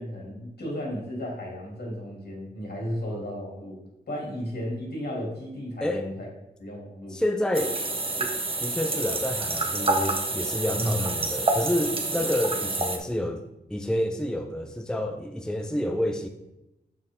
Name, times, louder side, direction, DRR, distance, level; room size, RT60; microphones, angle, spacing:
voice 1, 0.0-3.8 4.1-6.3 6.6-7.2 10.7-11.0, equal, 70° left, -2 dB, 2.9 m, -34 dB
voice 2, 7.1-7.8 8.2-8.3 8.6-13.4 13.7-16.3, left 1 dB, 5° left, 5 dB, 0.6 m, -29 dB
sound 1, 7.5-13.0, right 2 dB, 30° right, 1.0 m, -28 dB
6.7 x 6.4 x 3.7 m, 0.92 s
wide cardioid pair, 90°, 17 cm